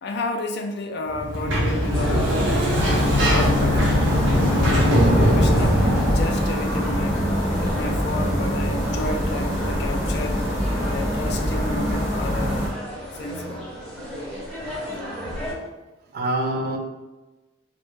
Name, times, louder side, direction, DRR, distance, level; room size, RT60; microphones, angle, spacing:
voice 1, 0.0-4.2 4.4-4.9 5.2-7.3 7.6-10.4 10.8-12.7 13.1-13.7 15.2-15.6, left 2 dB, 60° left, 4 dB, 0.3 m, -32 dB
Sliding door, 1.1-6.4, equal, 90° right, 0.7 m, -20 dB
sound 1, 1.5-15.5, equal, 5° left, 0.5 m, -36 dB
sound 2, 2.8-12.7, equal, 35° left, 0.7 m, -24 dB
voice 2, 14.9-15.4 16.1-16.8, right 1 dB, 50° right, 2 dB, 0.4 m, -27 dB
2.1 x 2.1 x 3.0 m, 1.1 s
head